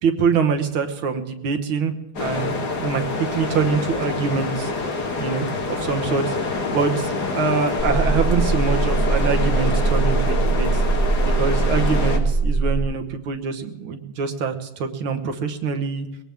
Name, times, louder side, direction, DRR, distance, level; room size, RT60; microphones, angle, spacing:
voice 1, 0.0-4.7 5.2-10.8 11.4-16.1, right 5 dB, 90° right, 6 dB, 2.1 m, -24 dB
sound 1, 2.2-12.2, left 3 dB, 55° left, 2.1 m, -26 dB
sound 2, 7.8-12.8, right 3 dB, 20° right, 5.4 m, -21 dB
21.5 x 18.0 x 3.5 m, 0.96 s
omnidirectional pair, 2.2 m